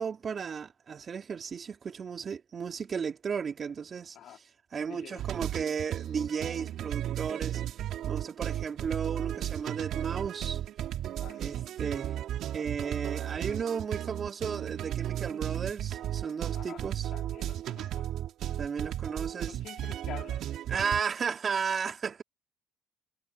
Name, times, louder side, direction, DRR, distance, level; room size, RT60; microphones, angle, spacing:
voice 1, 0.0-4.2 4.7-7.6 8.0-10.6 11.4-12.2 12.5-17.1 18.6-19.6 20.7-22.2, right 6 dB, 40° right, 3.4 m, -34 dB
voice 2, 4.9-5.2 11.2-11.5 16.5-16.8 17.1-18.0 19.5-20.4 20.7-20.9, left 11 dB, 60° left, 3.6 m, -47 dB
sound 1, 5.2-21.0, right 11 dB, 65° right, 3.2 m, -35 dB
supercardioid pair, 90°, 0 cm